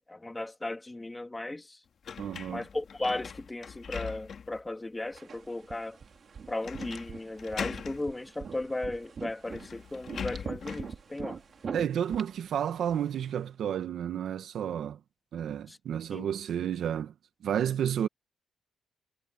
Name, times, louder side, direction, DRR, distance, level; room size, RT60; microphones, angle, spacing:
voice 1, 0.1-1.6 2.5-6.0 6.5-11.4 16.1-16.3, left 2 dB, 15° left, 2.2 m, -36 dB
sound 1, 2.0-4.6 5.1-5.2 6.6-7.1 7.4-8.0 9.0-9.1 9.4-10.9, left 7 dB, 50° left, 1.8 m, -40 dB
voice 2, 2.2-2.6 11.7-15.0 15.3-17.1 17.4-18.1, right 9 dB, 65° right, 1.4 m, -31 dB
sound 2, 5.2-13.4, right 6 dB, 45° right, 3.5 m, -44 dB
cardioid pair, 90°, 0 cm